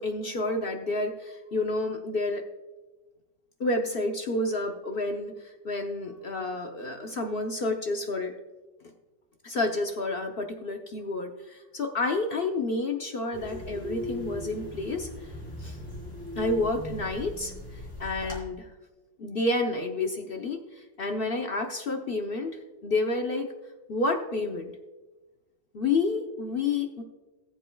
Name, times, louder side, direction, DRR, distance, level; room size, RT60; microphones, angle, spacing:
voice 1, 0.0-2.4 3.6-8.3 9.4-15.1 15.6-15.8 16.4-17.5 18.0-18.7 19.2-22.5 22.8-23.5 23.9-24.7 25.7-27.0, left 2 dB, 65° left, 4 dB, 0.5 m, -29 dB
sound 1, 13.3-18.4, left 1 dB, 10° left, 3.7 m, -38 dB
18.5 x 7.6 x 2.3 m, 1.2 s
omnidirectional pair, 2.0 m